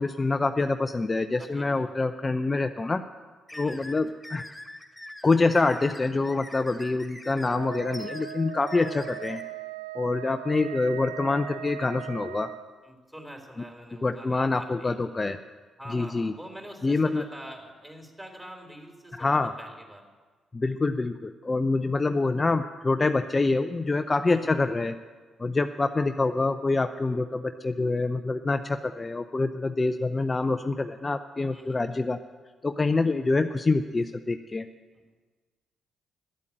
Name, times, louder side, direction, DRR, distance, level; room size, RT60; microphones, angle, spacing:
voice 1, 0.0-3.0 3.6-4.4 5.2-9.4 9.9-12.5 14.0-15.4 15.9-16.3 16.8-17.2 19.2-19.5 20.5-24.9 25.4-32.2 32.6-34.7, left 3 dB, 30° left, 8 dB, 0.6 m, -26 dB
voice 2, 1.4-1.9 3.5-3.9 12.8-15.0 15.8-20.0 24.3-24.6 31.5-31.8 34.9-35.2, right 1 dB, 10° right, 2 dB, 3.8 m, -45 dB
sound 1, 3.5-9.4, left 1 dB, 10° left, 2.4 m, -43 dB
Wind instrument woodwind instrument, 7.4-12.7, right 13 dB, 90° right, 0.5 m, -39 dB
11.5 x 8.3 x 8.8 m, 1.4 s
hypercardioid pair, 45°, 0 cm